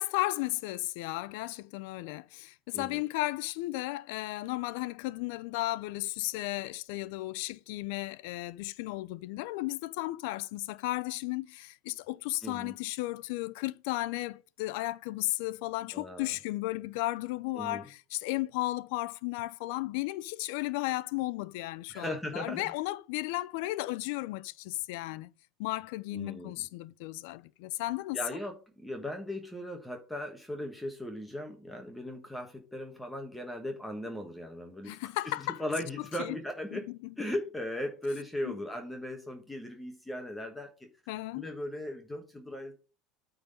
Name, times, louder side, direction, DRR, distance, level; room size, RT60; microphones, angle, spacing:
voice 1, 0.0-25.3 25.6-28.2 34.8-35.6 36.0-36.4 36.7-37.3 38.4-38.6 41.1-41.4, left 19 dB, 75° left, 0.5 m, -34 dB
voice 2, 2.7-3.0 12.4-12.7 15.9-16.3 17.5-17.8 21.9-22.7 26.1-26.5 28.1-35.0 35.4-36.9 37.2-40.9 41.3-42.7, left 1 dB, 5° left, 1.3 m, -38 dB
8.8 x 3.9 x 5.1 m
supercardioid pair, 135°, 0 cm